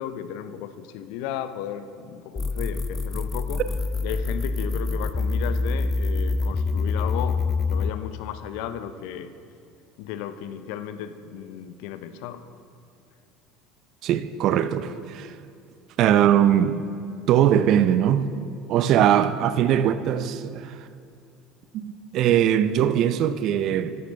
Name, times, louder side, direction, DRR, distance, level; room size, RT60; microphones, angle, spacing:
voice 1, 0.0-3.6 4.0-7.4 7.7-9.3 10.0-12.4, left 9 dB, 65° left, 0.6 m, -34 dB
sound 1, 2.4-7.9, left 3 dB, 20° left, 0.3 m, -26 dB
voice 2, 14.0-15.3 16.0-16.8 17.3-18.3 18.7-20.9 21.7-24.0, right 10 dB, 55° right, 0.6 m, -21 dB
13.5 x 11.0 x 3.4 m
hypercardioid pair, 70°, 0 cm